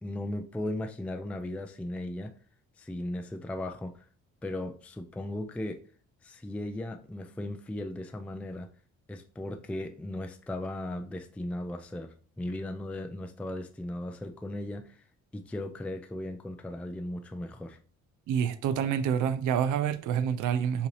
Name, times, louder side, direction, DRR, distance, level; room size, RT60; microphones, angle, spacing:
voice 1, 0.0-2.3 2.8-4.1 4.4-5.8 6.2-8.7 9.1-15.0 15.3-17.8, left 1 dB, 5° left, 0.4 m, -37 dB
voice 2, 18.3-20.9, right 8 dB, 85° right, 0.5 m, -27 dB
4.9 x 2.8 x 3.2 m
cardioid pair, 90°, 30 cm